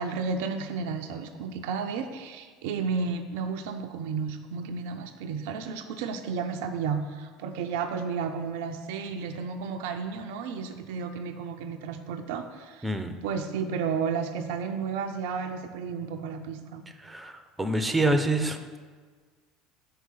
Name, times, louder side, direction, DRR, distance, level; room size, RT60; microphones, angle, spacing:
voice 1, 0.0-12.9 13.2-16.9, right 5 dB, 65° right, 6 dB, 0.4 m, -32 dB
voice 2, 12.8-13.2 17.0-18.6, right 2 dB, 10° right, 8 dB, 0.6 m, -26 dB
5.6 x 4.7 x 5.6 m, 1.5 s
figure-of-eight pair, 70°, 0 cm